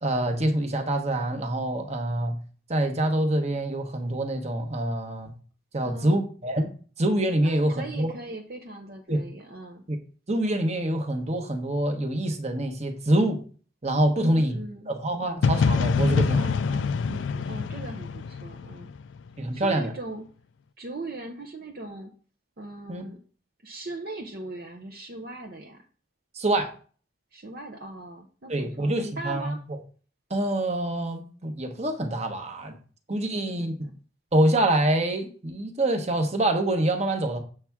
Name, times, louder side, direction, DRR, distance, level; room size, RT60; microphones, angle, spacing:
voice 1, 0.0-2.4 2.7-5.3 5.7-6.7 7.0-8.1 9.1-9.2 9.9-10.0 10.3-13.4 13.8-14.6 14.9-16.5 19.4-19.9 22.9-23.0 26.3-26.7 28.5-29.5 30.3-32.7 33.1-33.7 34.3-37.4, right 1 dB, 35° right, 1.1 m, -25 dB
voice 2, 5.8-6.2 7.4-9.8 14.1-14.9 16.3-18.9 19.5-20.3 20.8-22.1 22.6-23.2 23.6-25.8 27.3-29.6 33.3-33.9, right 2 dB, 55° right, 0.8 m, -39 dB
sound 1, 15.4-19.3, left 5 dB, 85° left, 0.4 m, -25 dB
7.7 x 3.5 x 5.9 m
head